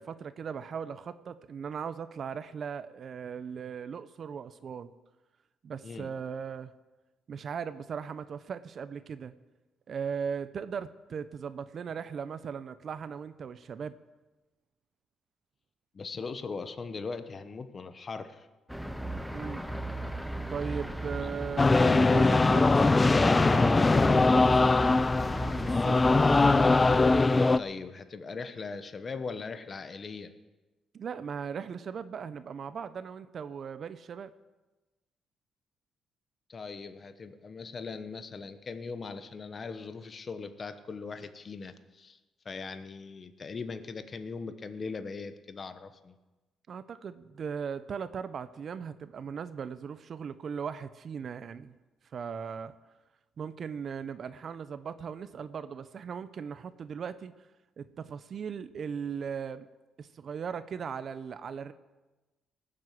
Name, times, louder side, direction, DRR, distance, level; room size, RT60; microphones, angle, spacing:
voice 1, 0.0-4.9 5.6-6.7 7.3-9.3 9.9-14.0 19.3-19.7 20.5-26.5 30.9-34.3 46.7-51.8 52.1-52.7 53.4-57.3 57.8-59.7 60.0-61.7, right 6 dB, 55° right, 13 dB, 0.6 m, -38 dB
voice 2, 15.9-18.5 27.6-30.3 36.5-42.2 42.4-46.1, left 4 dB, 40° left, 10 dB, 1.1 m, -40 dB
sound 1, 18.7-27.3, right 1 dB, ahead, 0.9 m, -36 dB
sound 2, 21.6-27.6, left 3 dB, 25° left, 0.5 m, -22 dB
18.5 x 7.7 x 7.8 m, 1.1 s
cardioid pair, 90°, 0 cm